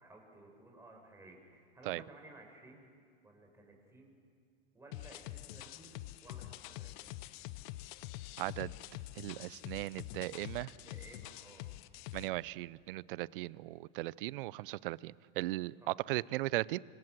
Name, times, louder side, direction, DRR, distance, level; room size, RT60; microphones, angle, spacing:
voice 1, 0.0-2.9 3.2-4.1 4.7-7.1 10.6-11.6 15.8-16.0, right 2 dB, 10° right, 1 dB, 5.6 m, -56 dB
sound 1, 4.9-12.3, left 16 dB, 55° left, 0.9 m, -46 dB
voice 2, 8.4-8.7 9.2-10.7 12.1-16.8, right 18 dB, 65° right, 22 dB, 0.6 m, -37 dB
25.5 x 25.0 x 7.6 m, 2.1 s
hypercardioid pair, 120°, 29 cm